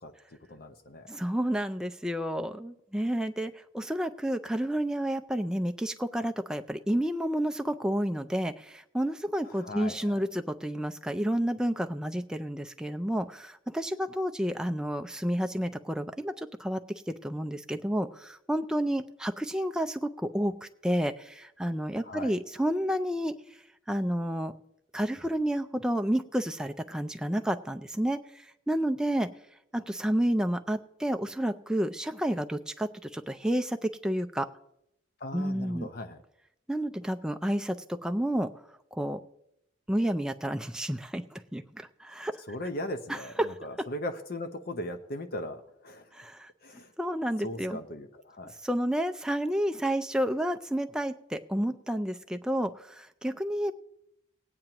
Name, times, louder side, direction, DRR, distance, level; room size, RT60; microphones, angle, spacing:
voice 1, 0.5-1.1 9.6-10.2 22.0-22.3 35.2-36.2 42.5-46.1 46.6-46.9 47.4-48.5, left 1 dB, 50° left, 8 dB, 0.7 m, -38 dB
voice 2, 1.1-23.3 23.9-24.6 24.9-29.3 29.7-34.5 35.3-35.9 36.7-38.5 38.9-39.2 39.9-42.3 43.1-43.6 46.1-46.5 47.0-47.8 48.6-53.7, equal, 5° right, 6 dB, 0.4 m, -30 dB
19.0 x 9.0 x 2.9 m, 0.79 s
head